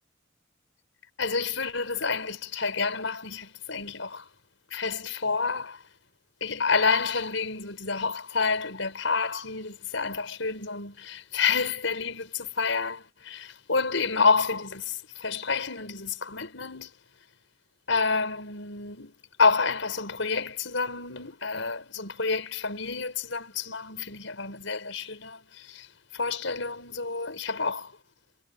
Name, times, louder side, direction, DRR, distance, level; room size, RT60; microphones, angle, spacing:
voice 1, 1.2-4.2 4.7-5.8 6.4-16.9 17.9-19.1 19.4-25.9 26.1-27.9, left 4 dB, 85° left, 5.3 m, -29 dB
head